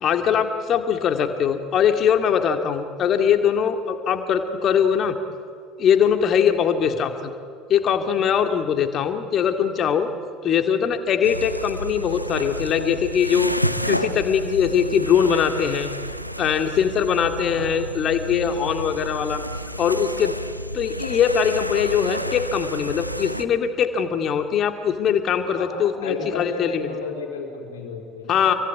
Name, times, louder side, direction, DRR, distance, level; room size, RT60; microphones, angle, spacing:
voice 1, 0.0-5.2 5.8-7.3 7.7-10.1 10.4-13.5 13.8-15.9 16.4-19.4 19.8-20.3 20.7-26.9 28.3-28.5, left 8 dB, 40° left, 7 dB, 2.3 m, -21 dB
sound 1, 11.2-23.4, equal, 90° left, 0.8 m, -30 dB
voice 2, 17.4-17.7 25.5-28.4, left 5 dB, 70° left, 0 dB, 4.2 m, -33 dB
26.0 x 24.0 x 9.4 m, 2.2 s
figure-of-eight pair, 65°, 0 cm